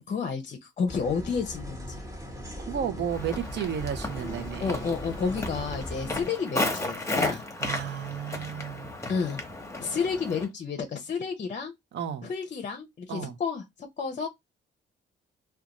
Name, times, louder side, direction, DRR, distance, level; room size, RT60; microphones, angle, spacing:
voice 1, 0.1-1.8 4.6-7.4 9.1-9.4 9.8-11.7 12.2-13.6 14.0-14.3, left 5 dB, 40° left, 0.5 m, -30 dB
sound 1, 0.9-6.2, equal, 15° right, 1.1 m, -38 dB
voice 2, 2.6-4.8 7.3-8.9 11.9-12.3 13.1-13.4, right 9 dB, 65° right, 0.6 m, -33 dB
Walk footsteps, 3.1-10.5, left 2 dB, 15° left, 0.9 m, -34 dB
2.4 x 2.2 x 2.8 m
cardioid pair, 90°, 20 cm